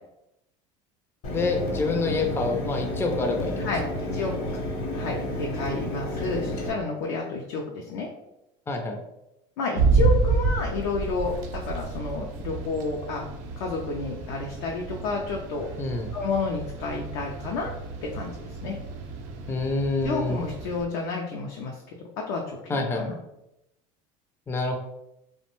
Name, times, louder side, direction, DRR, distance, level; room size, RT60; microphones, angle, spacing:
Mechanisms, 1.2-6.7, left 1 dB, 60° left, 0.9 m, -31 dB
voice 1, 1.3-3.7 8.7-9.0 15.8-16.1 19.5-20.4 22.7-23.2 24.5-24.8, left 3 dB, 15° left, 3 dB, 0.4 m, -27 dB
voice 2, 4.9-8.1 9.6-13.3 13.6-15.7 16.1-17.7 18.0-18.8 20.0-21.8 22.2-23.1, left 4 dB, 75° left, 0 dB, 0.4 m, -30 dB
sound 1, 9.8-20.8, right 4 dB, 65° right, 0.5 m, -29 dB
2.5 x 2.1 x 2.9 m, 0.87 s
supercardioid pair, 90°, 17 cm